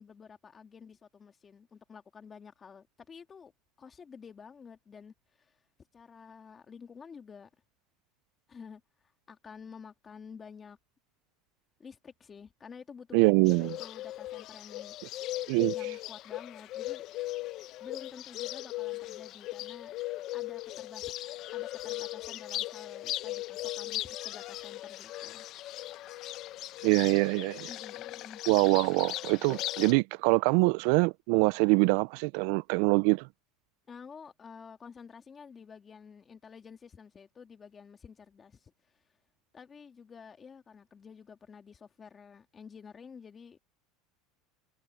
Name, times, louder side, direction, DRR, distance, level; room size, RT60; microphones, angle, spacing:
voice 1, 0.0-3.5 3.8-5.6 5.9-7.5 8.5-8.8 9.3-10.8 11.8-13.4 13.8-15.0 15.7-17.0 17.8-20.0 20.3-25.5 27.7-28.4 33.9-38.7 39.5-43.6, left 6 dB, 25° left, 2.2 m, -50 dB
voice 2, 13.1-13.7 15.5-15.7 26.8-27.7 28.5-33.3, right 27 dB, 65° right, 0.3 m, -24 dB
Bird, 13.5-29.9, left 16 dB, 50° left, 0.7 m, -38 dB
supercardioid pair, 135°, 0 cm